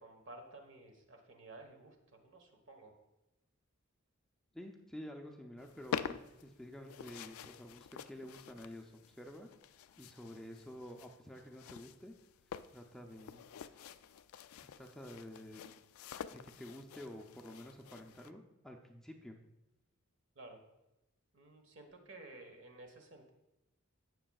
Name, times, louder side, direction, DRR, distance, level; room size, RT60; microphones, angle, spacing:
voice 1, 0.0-2.9 20.3-20.6 21.3-23.3, right 2 dB, 60° right, 4 dB, 1.3 m, -54 dB
voice 2, 4.5-9.5 10.0-12.1 12.7-13.5 14.6-15.7 16.3-19.4, equal, ahead, 2 dB, 0.5 m, -50 dB
sound 1, 5.6-18.3, left 8 dB, 85° left, 0.4 m, -47 dB
16.5 x 6.1 x 2.3 m, 0.95 s
head